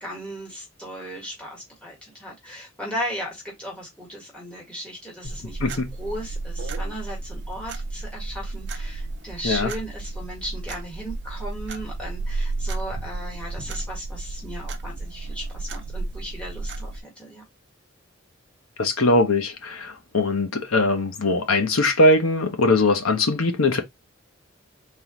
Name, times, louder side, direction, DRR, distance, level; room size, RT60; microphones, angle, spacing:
voice 1, 0.0-17.4, equal, 5° left, 1.8 m, -36 dB
sound 1, 5.2-17.0, right 3 dB, 55° right, 0.7 m, -32 dB
voice 2, 18.8-23.8, left 2 dB, 85° left, 1.0 m, -21 dB
3.8 x 3.0 x 3.6 m
head